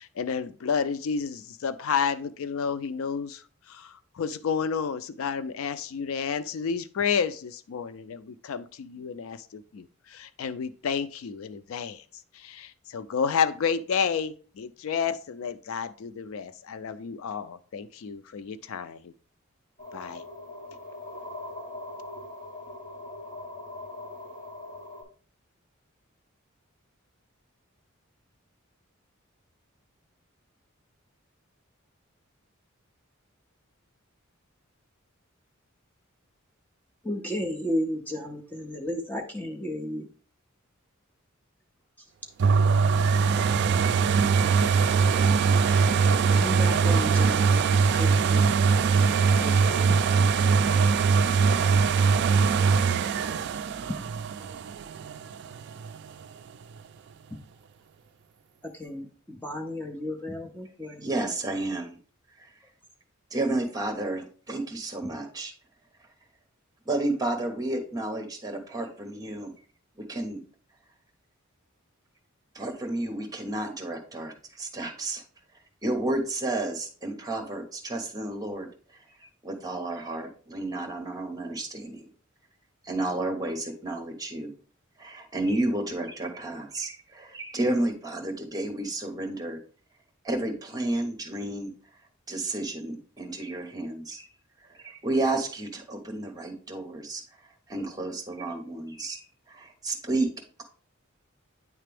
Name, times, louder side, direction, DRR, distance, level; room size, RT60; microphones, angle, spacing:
voice 1, 0.0-3.4 3.7-12.0 12.3-19.1 19.9-20.2, left 6 dB, 75° left, 14 dB, 0.4 m, -31 dB
sound 1, 19.8-25.0, left 2 dB, 40° left, 2.1 m, -41 dB
voice 2, 37.0-40.1 46.3-48.6 49.4-50.9 58.7-61.1, left 1 dB, 10° left, 1 dB, 0.6 m, -34 dB
sound 2, 42.4-56.1 56.6-56.7, right 5 dB, 55° right, 0.3 m, -22 dB
voice 3, 60.8-62.0 62.4-62.5 63.3-65.5 66.8-69.5 70.0-70.4 72.5-75.2 75.8-82.1 82.8-84.5 85.0-89.6 90.2-91.7 92.3-94.3 94.7-97.2 97.7-99.2 99.5-100.3, right 2 dB, 20° right, 4 dB, 1.1 m, -31 dB
9.1 x 3.3 x 3.4 m, 0.41 s
head